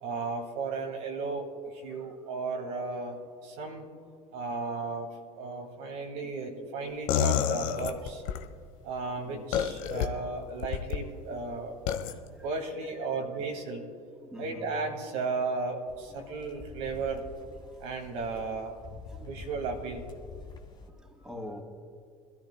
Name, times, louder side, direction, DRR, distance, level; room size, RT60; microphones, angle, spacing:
voice 1, 0.0-3.8 4.3-5.1 5.4-8.2 8.8-11.8 12.4-13.8 14.4-17.2 17.8-18.7 19.2-20.0, right 4 dB, 65° right, 2.3 m, -35 dB
sound 1, 7.1-8.4 9.5-10.1 10.6-11.0 11.9-12.1, left 9 dB, 70° left, 1.0 m, -28 dB
voice 2, 12.4-12.8 14.2-14.7 16.1-16.5 17.6-17.8 19.1-19.5 20.3-20.6 20.9-21.6, left 1 dB, 5° right, 2.6 m, -47 dB
sound 2, 15.9-20.9, left 4 dB, 25° left, 1.7 m, -47 dB
25.0 x 13.5 x 2.2 m
hypercardioid pair, 65°, 18 cm